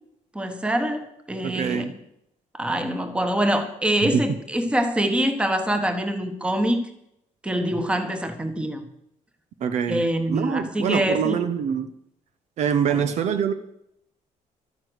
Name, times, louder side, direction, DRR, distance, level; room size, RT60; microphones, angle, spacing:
voice 1, 0.3-1.9 2.5-6.8 7.4-8.8 9.9-11.5 12.9-13.0, right 1 dB, 10° right, 8 dB, 1.3 m, -25 dB
voice 2, 1.4-1.9 4.0-4.2 9.6-10.0 10.3-11.9 12.6-13.5, right 7 dB, 55° right, 10 dB, 0.9 m, -24 dB
12.5 x 9.7 x 8.0 m, 0.78 s
cardioid pair, 165°, 14 cm